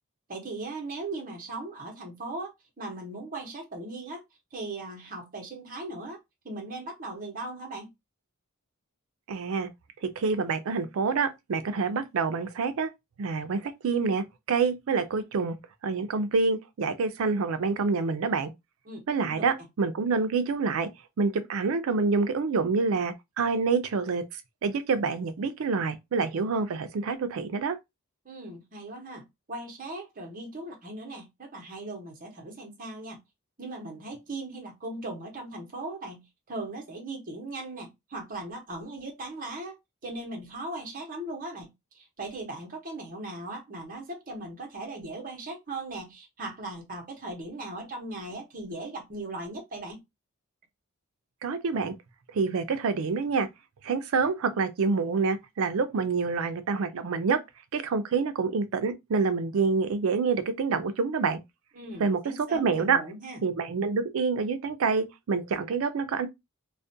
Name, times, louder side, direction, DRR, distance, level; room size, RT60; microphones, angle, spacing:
voice 1, 0.3-2.5 2.8-4.2 4.5-6.2 6.4-7.9 18.9-19.5 28.2-33.2 33.6-50.0 61.7-63.4, right 2 dB, 40° right, 0.8 m, -38 dB
voice 2, 9.3-9.7 10.0-12.9 13.2-15.6 15.8-18.5 19.1-20.9 21.2-24.2 24.6-27.8 51.4-51.9 52.3-53.5 53.8-57.4 57.7-61.4 62.0-63.0 63.4-66.3, right 4 dB, 70° right, 0.4 m, -27 dB
2.4 x 2.1 x 2.6 m
head